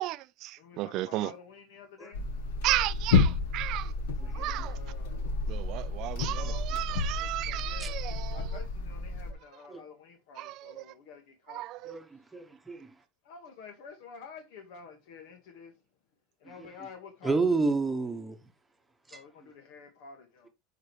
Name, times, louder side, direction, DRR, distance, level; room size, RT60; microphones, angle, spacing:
voice 1, 0.0-1.3 2.6-3.9 4.3-4.8 5.5-8.6 10.4-10.8 11.5-12.0, right 17 dB, 50° right, 0.4 m, -34 dB
voice 2, 0.6-2.4 4.2-5.3 6.2-8.0 8.3-12.0 13.3-15.7 16.4-17.6 19.1-20.5, left 5 dB, 70° left, 2.0 m, -50 dB
sound 1, 2.1-9.3, left 3 dB, 85° left, 1.7 m, -30 dB
voice 3, 11.9-12.9 16.6-16.7 17.2-18.4 19.1-19.2, right 3 dB, 10° right, 1.2 m, -30 dB
9.5 x 5.1 x 3.3 m
supercardioid pair, 150°, 0 cm